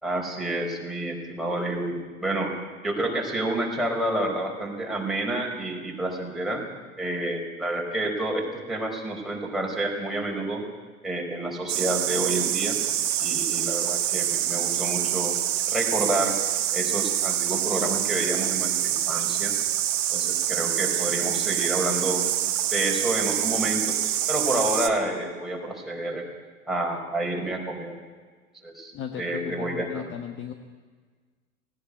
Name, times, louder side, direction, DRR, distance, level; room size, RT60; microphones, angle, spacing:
voice 1, 0.0-2.5 2.8-6.6 7.0-10.6 11.0-12.8 13.2-15.3 15.7-16.4 16.7-19.5 20.1-22.2 22.7-24.0 24.3-26.3 26.7-28.0 28.6-30.1, right 1 dB, ahead, -2 dB, 4.7 m, -29 dB
sound 1, 11.7-24.9, right 11 dB, 55° right, 1.6 m, -26 dB
voice 2, 28.9-30.5, left 8 dB, 25° left, 6 dB, 1.3 m, -35 dB
18.5 x 18.5 x 8.4 m, 1.5 s
figure-of-eight pair, 85°, 44 cm